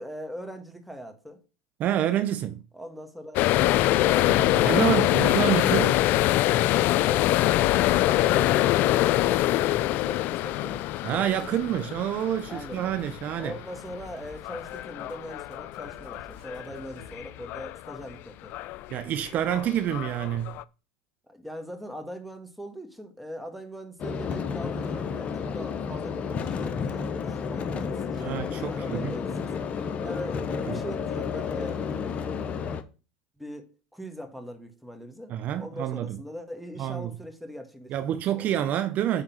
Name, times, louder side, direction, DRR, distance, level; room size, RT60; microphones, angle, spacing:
voice 1, 0.0-1.4 2.7-3.4 11.7-11.9 12.5-12.9 13.3-18.5 21.3-29.5 30.0-31.9 33.4-33.6 33.9-38.6, equal, ahead, 1.6 m, -41 dB
voice 2, 1.8-2.6 4.7-6.0 11.0-13.5 18.9-20.5 28.2-29.1 30.7-30.8 35.3-36.2 36.8-37.1 37.9-39.2, right 11 dB, 45° right, 0.7 m, -27 dB
sound 1, 3.4-18.1 18.5-18.9 19.3-20.6, left 15 dB, 55° left, 0.4 m, -24 dB
sound 2, 10.5-11.8 12.1-17.2, right 1 dB, 70° right, 3.1 m, -53 dB
sound 3, 24.0-32.8, left 6 dB, 35° left, 0.8 m, -31 dB
9.1 x 3.6 x 5.5 m
supercardioid pair, 100°, 4 cm